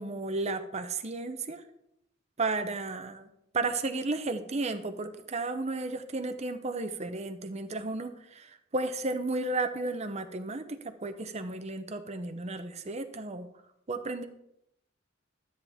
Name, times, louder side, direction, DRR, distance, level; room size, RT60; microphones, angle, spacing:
voice 1, 0.0-1.6 2.4-3.3 3.5-13.5 13.9-14.3, right 3 dB, 35° right, 8 dB, 0.8 m, -33 dB
13.0 x 8.8 x 3.5 m, 0.79 s
head